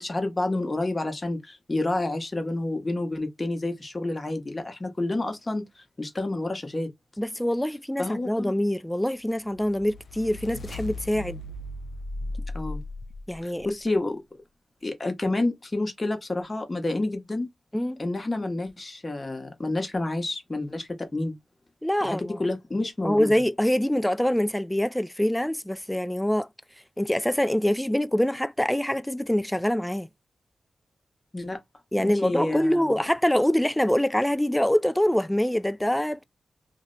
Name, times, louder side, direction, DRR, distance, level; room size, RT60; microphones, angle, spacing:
voice 1, 0.0-6.9 8.0-8.5 12.5-12.8 13.4-14.2 14.8-17.5 18.0-21.3 22.0-23.3 31.3-31.6 32.0-33.0, left 2 dB, 35° left, 1.0 m, -29 dB
voice 2, 7.2-11.4 13.3-13.7 17.7-18.0 21.8-22.4 23.0-26.5 27.0-30.1 31.9-36.2, left 1 dB, 10° left, 0.3 m, -25 dB
sound 1, 9.4-13.7, left 2 dB, 70° left, 0.5 m, -37 dB
2.6 x 2.1 x 3.9 m
cardioid pair, 45°, 0 cm